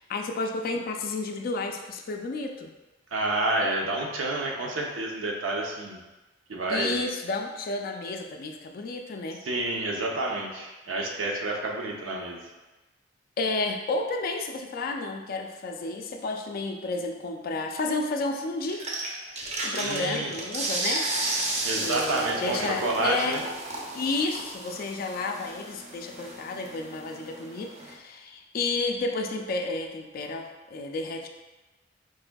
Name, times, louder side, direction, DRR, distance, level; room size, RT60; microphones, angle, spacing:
voice 1, 0.0-2.7 6.7-9.4 13.4-18.9 19.6-21.1 21.8-23.4 23.9-31.3, left 3 dB, 50° left, 4 dB, 0.3 m, -31 dB
voice 2, 3.1-6.0 6.5-7.0 9.4-12.4 19.7-20.3 21.6-23.4, right 2 dB, 85° right, -1 dB, 0.6 m, -29 dB
sound 1, 18.7-27.9, right 2 dB, 35° right, 0.5 m, -33 dB
4.6 x 2.5 x 2.2 m, 1.1 s
head